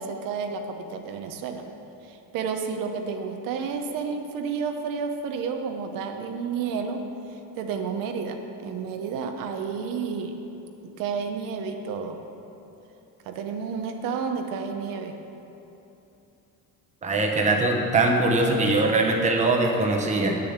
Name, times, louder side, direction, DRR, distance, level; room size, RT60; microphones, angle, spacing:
voice 1, 0.0-1.6 2.0-10.4 11.0-12.2 13.2-15.1 17.4-17.6, right 5 dB, 70° right, 5 dB, 0.9 m, -31 dB
voice 2, 17.0-20.4, right 2 dB, 20° right, 0 dB, 1.0 m, -22 dB
8.4 x 6.8 x 8.1 m, 3.0 s
cardioid pair, 165°, 34 cm